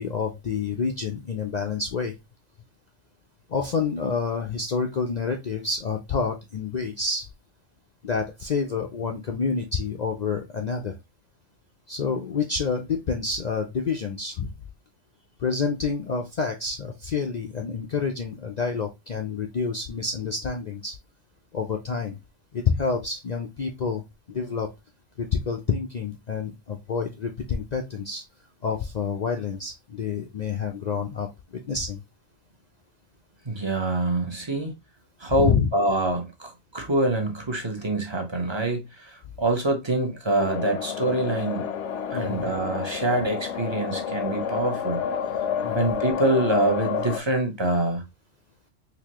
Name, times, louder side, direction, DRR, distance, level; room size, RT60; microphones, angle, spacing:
voice 1, 0.0-2.1 3.5-7.3 8.0-11.0 11.9-14.5 15.4-21.0 21.5-22.2 22.5-24.0 24.3-24.7 25.2-28.2 28.6-32.0 35.4-35.7 42.1-42.5 45.6-45.9, left 5 dB, 60° left, 0.4 m, -28 dB
voice 2, 33.4-34.7 35.2-41.7 42.1-45.0 45.7-48.0, right 2 dB, 25° right, 0.7 m, -25 dB
sound 1, 40.4-47.2, left 7 dB, 75° left, 0.9 m, -29 dB
4.0 x 2.8 x 2.9 m
omnidirectional pair, 1.3 m